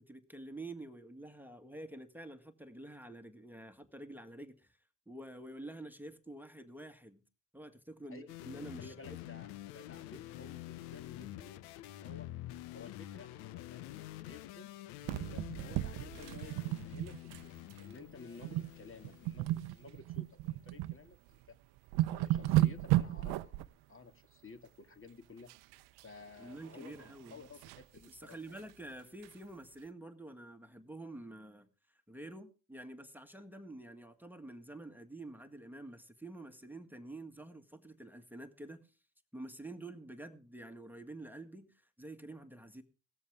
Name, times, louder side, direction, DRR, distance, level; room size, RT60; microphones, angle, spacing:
voice 1, 0.0-4.8 5.1-7.2 7.5-9.2 26.4-27.4 28.1-31.7 32.1-38.9 39.3-42.8, right 1 dB, 5° right, 1.7 m, -48 dB
sound 1, 8.3-19.8, left 15 dB, 80° left, 0.8 m, -48 dB
voice 2, 8.8-12.3 12.7-14.7 15.3-21.4 22.1-23.6 23.9-25.5 26.0-28.6, left 4 dB, 30° left, 2.4 m, -54 dB
sound 2, 15.0-17.4 17.7-17.9 18.4-18.7 19.0-21.0 21.4-21.5 21.8-23.7 25.5-26.0 26.4-27.8 28.3-28.4 28.7-28.8 29.2-29.3, right 16 dB, 75° right, 0.8 m, -34 dB
17.5 x 13.5 x 3.6 m
hypercardioid pair, 50°, 39 cm